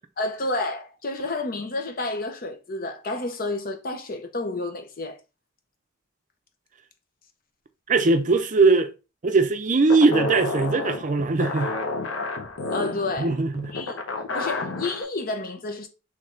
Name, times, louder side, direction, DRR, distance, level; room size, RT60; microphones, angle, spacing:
voice 1, 0.2-5.2 12.7-13.3 13.7-14.0 14.3-15.9, left 2 dB, 45° left, 0.7 m, -30 dB
voice 2, 7.9-8.9 9.2-11.7 13.2-13.7, right 3 dB, 40° right, 0.5 m, -20 dB
sound 1, 9.9-15.0, left 3 dB, 80° left, 0.7 m, -30 dB
3.4 x 3.2 x 3.7 m
head